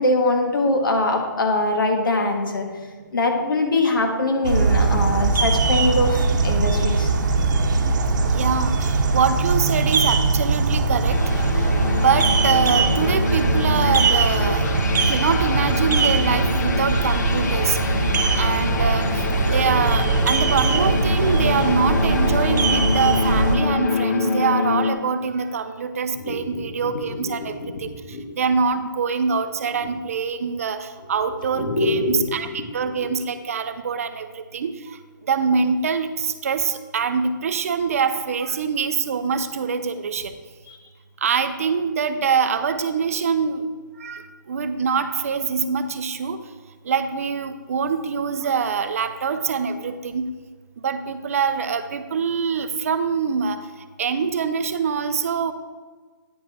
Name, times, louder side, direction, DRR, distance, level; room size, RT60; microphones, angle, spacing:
voice 1, 0.0-2.7 3.1-7.1 26.1-28.2 29.8-29.9 31.5-33.0, left 2 dB, 80° left, 3 dB, 1.3 m, -23 dB
sound 1, 4.4-23.6, right 3 dB, 60° right, 0.9 m, -21 dB
voice 2, 8.2-11.2 11.6-14.6 15.1-17.8 18.4-19.1 19.5-27.9 28.4-32.5 32.7-34.7 35.3-40.3 41.2-43.6 44.0-44.2 44.5-46.4 46.9-50.3 50.8-53.6 54.0-55.5, right 6 dB, 45° right, 10 dB, 0.4 m, -24 dB
sound 2, 11.1-24.9, left 5 dB, 55° left, 0.6 m, -26 dB
9.3 x 3.9 x 4.5 m, 1.4 s
hypercardioid pair, 175°, 11 cm